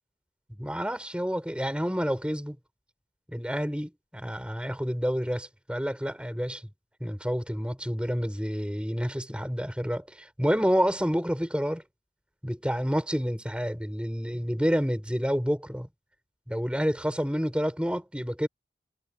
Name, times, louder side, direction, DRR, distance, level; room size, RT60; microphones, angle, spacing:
voice 1, 0.6-2.6 3.3-6.6 7.0-11.8 12.4-15.9 16.5-18.5, equal, 5° right, 6.0 m, -29 dB
head